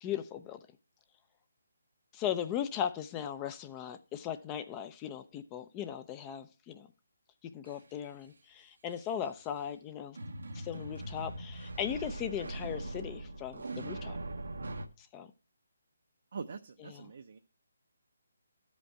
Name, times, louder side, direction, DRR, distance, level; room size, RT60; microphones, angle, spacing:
voice 1, 0.0-0.6 2.1-6.9 7.5-10.2 10.5-14.2 15.0-15.3 16.8-17.1, left 9 dB, 20° left, 0.5 m, -38 dB
sound 1, 7.7-7.8 8.9-9.3 10.2-14.9, right 2 dB, 80° right, 0.9 m, -41 dB
voice 2, 16.3-17.4, right 5 dB, 60° right, 0.6 m, -43 dB
12.5 x 5.2 x 4.6 m
figure-of-eight pair, 155°, 0 cm